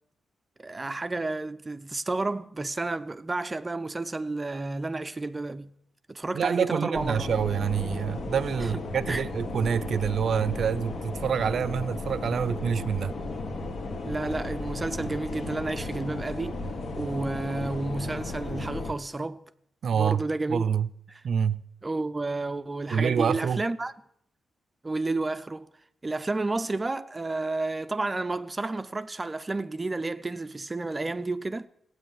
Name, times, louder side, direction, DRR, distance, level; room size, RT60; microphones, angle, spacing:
voice 1, 0.6-5.7 6.1-7.3 8.6-9.2 14.0-16.6 17.0-19.4 19.9-20.6 21.1-21.2 21.8-23.9 24.8-25.7 26.0-31.7, right 2 dB, 20° right, 0.6 m, -31 dB
voice 2, 6.3-13.1 19.8-20.2 20.5-20.9 21.2-21.6 22.9-23.6, right 7 dB, 60° right, 0.6 m, -27 dB
sound 1, 6.9-18.9, left 2 dB, 65° left, 2.3 m, -35 dB
16.5 x 9.4 x 9.1 m
wide cardioid pair, 140°, 0 cm